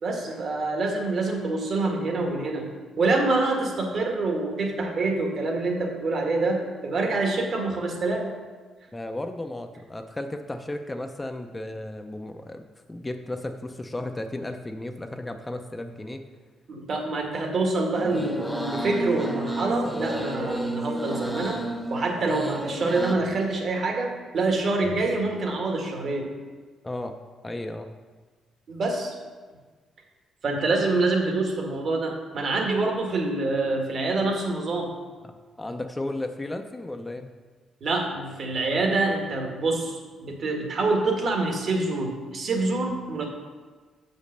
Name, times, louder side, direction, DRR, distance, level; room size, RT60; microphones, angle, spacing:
voice 1, 0.0-2.7 3.0-8.3 16.7-21.6 21.9-26.3 28.7-29.2 30.4-34.9 37.8-43.3, right 3 dB, 55° right, 1 dB, 1.7 m, -26 dB
voice 2, 8.9-16.2 26.8-27.2 27.4-27.9 35.2-35.3 35.6-37.3, left 1 dB, 15° left, 6 dB, 0.6 m, -34 dB
sound 1, 17.9-23.1, right 1 dB, ahead, 0.9 m, -31 dB
6.3 x 5.3 x 6.6 m, 1.4 s
cardioid pair, 90°, 0 cm